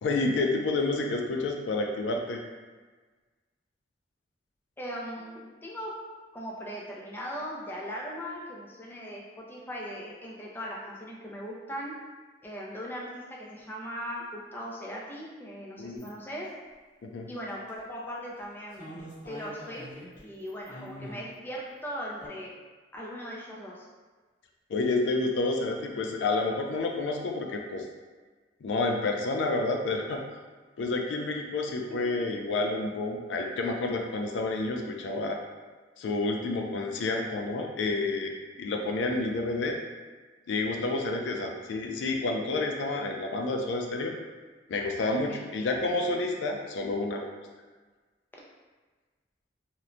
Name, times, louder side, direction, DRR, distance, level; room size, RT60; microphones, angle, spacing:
voice 1, 0.0-2.4 15.8-16.1 17.0-17.3 24.7-27.8 28.6-30.2 30.8-35.4 36.0-38.3 38.6-39.8 40.5-44.1 44.7-47.3, left 2 dB, 90° left, 2 dB, 0.4 m, -29 dB
voice 2, 4.8-5.9 6.3-11.9 12.4-16.5 17.3-18.9 19.3-19.9 20.2-22.5 22.9-23.9 31.9-32.0 45.3-45.5, equal, 10° left, -4 dB, 0.3 m, -39 dB
sound 1, 16.0-16.1 17.5-17.8 18.4-18.5 18.7-20.2 20.5-21.2 22.2-22.3, equal, 45° left, 0.9 m, -44 dB
2.9 x 2.1 x 2.5 m, 1.4 s
head